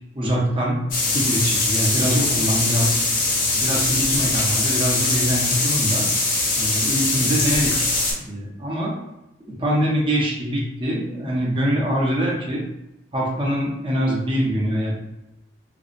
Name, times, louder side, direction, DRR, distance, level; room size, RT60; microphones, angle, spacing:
voice 1, 0.1-0.8 1.1-3.0 3.5-6.1 6.6-8.9 9.4-12.6 13.1-14.9, equal, 30° right, -4 dB, 0.6 m, -24 dB
sound 1, 0.9-8.1, left 2 dB, 50° left, 0.6 m, -21 dB
2.6 x 2.0 x 2.4 m, 0.88 s
head